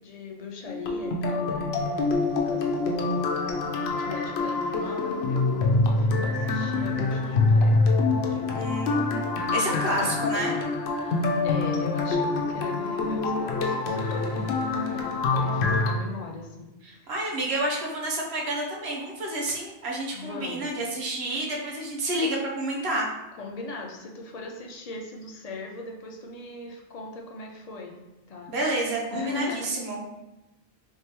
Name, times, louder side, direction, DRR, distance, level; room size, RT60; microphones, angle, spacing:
voice 1, 0.0-3.1 3.9-7.9 8.2-8.7 9.4-10.7 11.0-17.1 20.1-20.8 23.4-28.0 28.3-28.5 29.1-29.6, left 4 dB, 50° left, 1 dB, 0.5 m, -39 dB
sound 1, 0.7-15.9, left 3 dB, 85° left, 0.8 m, -25 dB
voice 2, 8.5-10.5 16.8-23.1 28.5-30.1, right 1 dB, 85° right, -2 dB, 1.1 m, -29 dB
3.5 x 3.4 x 2.9 m, 0.99 s
omnidirectional pair, 1.0 m